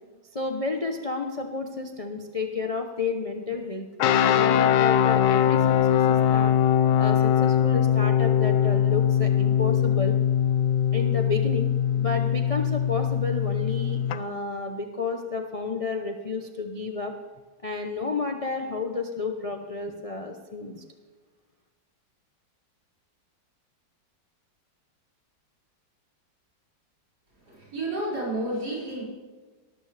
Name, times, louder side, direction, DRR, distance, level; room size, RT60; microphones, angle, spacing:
voice 1, 0.3-6.5 7.0-10.2 10.9-17.1 17.6-20.8, left 4 dB, 35° left, 3 dB, 0.6 m, -31 dB
sound 1, 4.0-14.2, left 9 dB, 80° left, 1.3 m, -22 dB
voice 2, 27.5-29.0, right 1 dB, 60° right, -6 dB, 6.1 m, -31 dB
18.5 x 13.5 x 3.4 m, 1.4 s
omnidirectional pair, 2.0 m